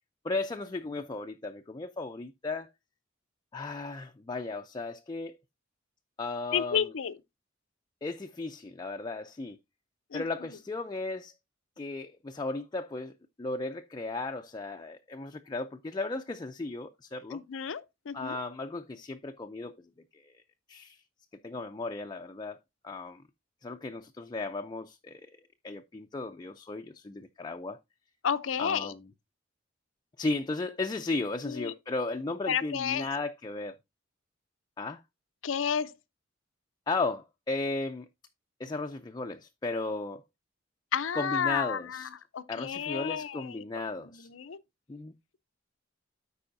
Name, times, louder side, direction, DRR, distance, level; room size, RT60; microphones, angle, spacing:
voice 1, 0.2-2.7 3.5-5.4 6.2-6.8 8.0-9.6 10.1-11.3 11.8-13.1 13.4-17.4 18.1-19.7 20.1-20.3 20.7-21.0 21.4-22.6 22.8-23.2 23.6-25.3 25.6-27.8 28.6-29.1 30.2-33.8 34.8-35.0 36.9-38.1 38.6-40.2 41.1-42.1 42.5-44.3 44.9-45.1, left 3 dB, 20° left, 0.4 m, -35 dB
voice 2, 6.5-7.2 10.1-10.2 17.3-18.4 28.2-28.9 31.4-31.7 32.5-33.1 35.4-36.0 40.9-43.6 44.0-44.6, left 7 dB, 90° left, 0.6 m, -31 dB
13.0 x 4.8 x 2.5 m
head